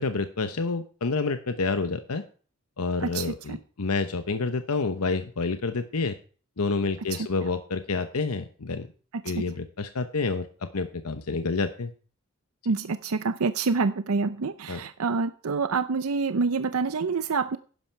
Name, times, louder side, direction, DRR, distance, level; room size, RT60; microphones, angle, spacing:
voice 1, 0.0-2.2 2.8-6.2 6.6-8.9 9.2-11.9 14.7-14.8, left 3 dB, 90° left, 9 dB, 0.9 m, -28 dB
voice 2, 3.0-3.6 7.1-7.2 9.1-9.2 12.7-17.6, right 4 dB, 85° right, 11 dB, 0.6 m, -27 dB
12.0 x 10.0 x 4.6 m, 0.40 s
head